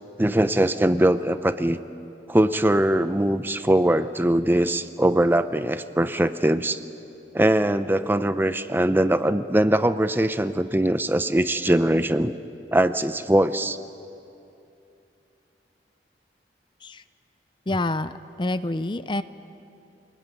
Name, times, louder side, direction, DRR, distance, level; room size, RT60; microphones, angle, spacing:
voice 1, 0.2-1.8 2.3-6.8 7.3-12.3 12.7-13.8, right 1 dB, 10° right, 12 dB, 0.6 m, -21 dB
voice 2, 17.7-18.1 18.4-19.2, left 2 dB, 25° left, 13 dB, 0.6 m, -27 dB
26.5 x 19.5 x 9.4 m, 2.7 s
head